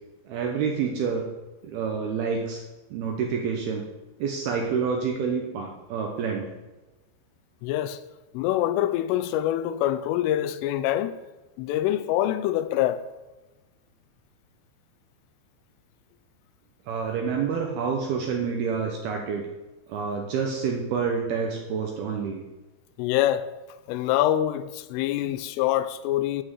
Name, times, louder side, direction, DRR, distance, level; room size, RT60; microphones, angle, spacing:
voice 1, 0.3-1.3 1.6-2.6 2.9-3.8 4.2-6.5 16.9-19.4 19.9-22.4, right 6 dB, 75° right, 2.4 m, -28 dB
voice 2, 7.6-8.0 8.3-11.2 11.6-13.0 23.0-23.5 23.9-26.4, left 12 dB, 85° left, 3.2 m, -25 dB
11.5 x 6.0 x 8.2 m
omnidirectional pair, 5.7 m